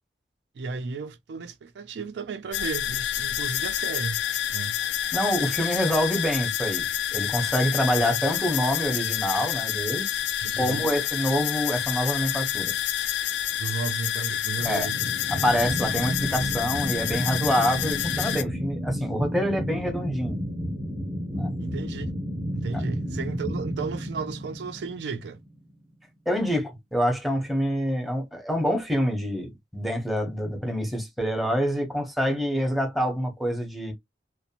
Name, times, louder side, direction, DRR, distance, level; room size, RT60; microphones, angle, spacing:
voice 1, 0.6-4.2 4.5-4.8 8.0-8.2 10.4-10.9 13.6-15.1 21.6-22.1 22.5-25.4, right 4 dB, 75° right, 0.4 m, -34 dB
sound 1, 2.5-18.4, left 11 dB, 80° left, 0.4 m, -28 dB
voice 2, 5.1-10.2 10.6-12.7 14.6-14.9 15.3-20.4 21.3-21.5 22.7-22.8 26.3-33.9, equal, ahead, 0.7 m, -26 dB
sound 2, 14.6-25.5, equal, 30° right, 0.8 m, -32 dB
2.6 x 2.0 x 2.7 m
head